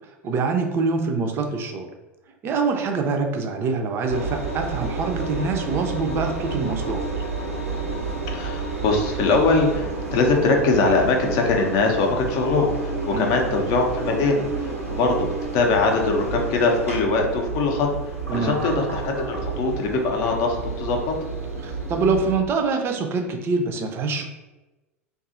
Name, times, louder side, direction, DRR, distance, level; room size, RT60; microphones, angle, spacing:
voice 1, 0.2-1.9 2.4-7.0 13.1-13.4 18.3-18.6 21.6-24.2, right 4 dB, 30° right, 4 dB, 0.4 m, -25 dB
Engine, 4.1-22.4, right 3 dB, 90° right, 0.6 m, -30 dB
voice 2, 8.3-21.3, left 3 dB, 45° left, 2 dB, 0.5 m, -22 dB
2.6 x 2.4 x 2.5 m, 1.1 s
figure-of-eight pair, 80°, 8 cm